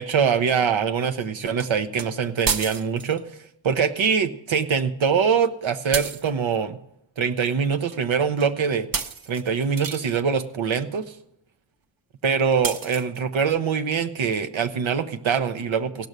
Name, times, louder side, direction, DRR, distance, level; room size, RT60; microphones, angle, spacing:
voice 1, 0.0-3.2 3.6-6.8 7.2-8.9 9.3-11.0 12.2-16.1, right 6 dB, 80° right, 9 dB, 0.9 m, -23 dB
sound 1, 1.6-1.7 2.0-2.1 2.4-3.2 5.9-6.3 7.9-8.0 8.4-8.5 8.9-10.1 12.6-13.2, right 5 dB, 45° right, 0.8 m, -30 dB
16.0 x 6.1 x 6.7 m, 0.81 s
cardioid pair, 60°, 47 cm